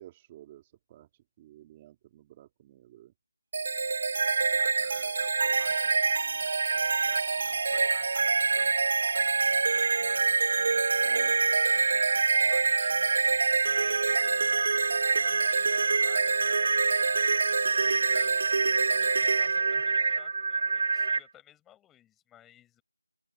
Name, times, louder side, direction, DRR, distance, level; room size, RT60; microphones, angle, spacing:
voice 1, 0.0-3.1 11.0-11.5, right 13 dB, 15° right, 2.8 m, -52 dB
sound 1, 3.5-21.2, right 4 dB, 35° right, 0.4 m, -25 dB
voice 2, 4.6-9.4 9.6-11.1 11.7-14.6 15.0-18.4 18.9-22.8, left 12 dB, 5° left, 7.8 m, -57 dB
open air
figure-of-eight pair, 175°, 0 cm